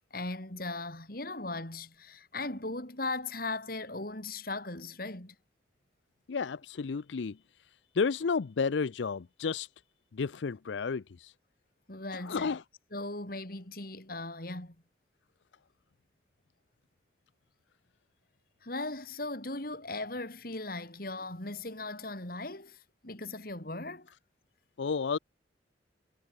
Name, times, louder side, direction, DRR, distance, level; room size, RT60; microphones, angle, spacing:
voice 1, 0.0-5.4 11.9-12.6 12.9-14.8 18.6-24.1, left 2 dB, 50° left, 4.0 m, -38 dB
voice 2, 6.3-7.4 7.9-9.7 10.1-11.3 12.2-12.6 24.8-25.2, left 5 dB, 75° left, 0.5 m, -31 dB
head